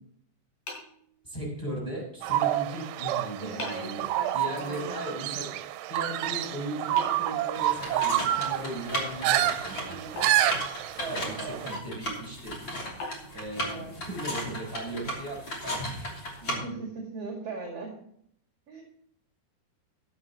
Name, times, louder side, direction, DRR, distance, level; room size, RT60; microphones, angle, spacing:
sound 1, 0.7-1.8 3.0-3.1 3.6-4.0 7.0-8.2 10.2-11.2 13.0-15.1, left 2 dB, 60° left, 5.7 m, -43 dB
voice 1, 1.2-4.1 4.3-5.6 5.9-10.3 11.1-12.7 13.3-16.8, right 1 dB, 5° left, -3 dB, 5.3 m, -37 dB
sound 2, 2.2-11.8, right 13 dB, 85° right, 2.7 m, -29 dB
voice 2, 3.4-5.0 9.8-10.1 10.9-11.7 13.5-13.9 16.5-17.9 18.7-18.8, right 3 dB, 45° right, 0 dB, 2.6 m, -39 dB
sound 3, 7.5-16.5, equal, 30° left, 3.3 m, -36 dB
15.0 x 12.0 x 3.0 m, 0.66 s
omnidirectional pair, 4.9 m